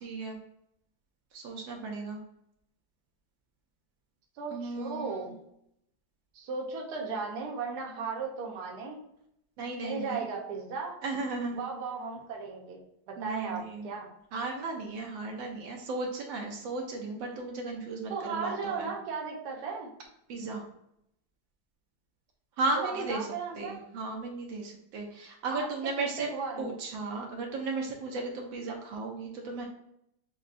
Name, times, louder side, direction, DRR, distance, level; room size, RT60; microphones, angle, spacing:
voice 1, 0.0-0.4 1.3-2.2 4.5-5.3 9.6-10.3 11.0-11.6 13.2-13.9 14.3-18.9 20.3-20.6 22.6-23.3 23.6-26.3 26.6-29.7, right 3 dB, 80° right, 1 dB, 1.4 m, -35 dB
voice 2, 4.4-5.3 6.3-9.0 9.8-11.0 11.5-12.8 13.1-14.1 18.1-19.9 22.8-23.8 25.5-26.7, right 5 dB, 60° right, 0 dB, 1.2 m, -36 dB
6.4 x 2.3 x 2.5 m, 0.76 s
omnidirectional pair, 2.1 m